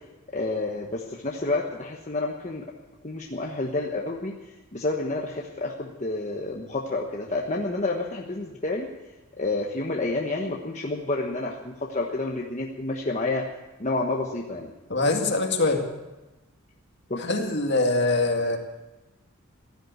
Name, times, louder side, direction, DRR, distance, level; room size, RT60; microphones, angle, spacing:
voice 1, 0.3-2.6 3.0-4.3 4.7-8.9 9.4-13.4 13.8-14.7 17.1-17.2, left 2 dB, 35° left, -1 dB, 1.2 m, -29 dB
voice 2, 14.9-15.8 17.2-18.6, left 2 dB, 55° left, 2 dB, 2.1 m, -23 dB
16.5 x 11.0 x 7.9 m, 1.1 s
head